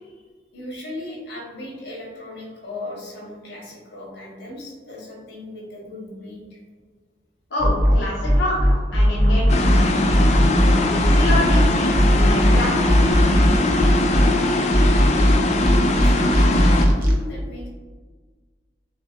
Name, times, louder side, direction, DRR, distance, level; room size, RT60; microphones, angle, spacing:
voice 1, 0.5-6.6 15.8-17.7, left 2 dB, 60° left, -4 dB, 1.4 m, -37 dB
voice 2, 7.5-10.1 10.9-13.2, left 1 dB, 80° left, -4 dB, 0.8 m, -27 dB
sound 1, 7.6-14.3 14.7-17.1, equal, 50° right, 0.8 m, -17 dB
sound 2, 9.5-16.9, left 2 dB, 40° left, 0.3 m, -21 dB
6.1 x 2.6 x 2.5 m, 1.5 s
head